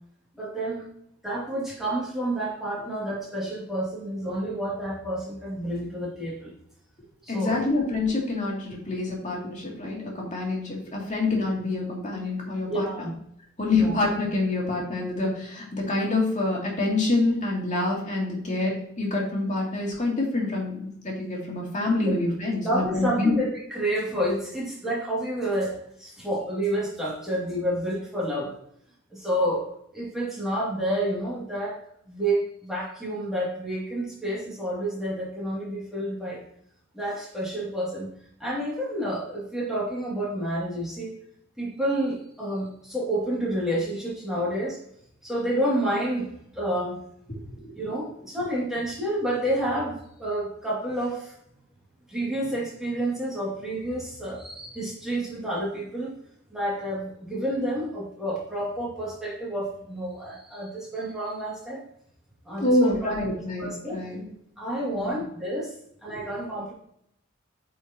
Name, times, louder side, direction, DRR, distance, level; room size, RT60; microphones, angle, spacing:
voice 1, 0.4-0.8 1.2-6.5 7.2-7.6 12.7-13.1 13.7-14.0 21.9-22.1 22.6-28.5 29.1-31.8 32.1-36.4 36.9-38.1 38.4-41.1 41.6-44.8 45.2-46.3 46.5-47.0 47.8-51.3 52.1-56.1 56.5-61.8 62.4-63.1 63.6-64.0 64.6-65.7 66.0-66.7, right 1 dB, ahead, -6 dB, 2.3 m, -29 dB
voice 2, 7.3-12.9 13.6-18.7 19.0-23.3 47.5-47.6 62.6-64.2 64.9-65.1 66.1-66.3, left 2 dB, 35° left, -3 dB, 2.5 m, -26 dB
8.9 x 5.0 x 2.9 m, 0.72 s
head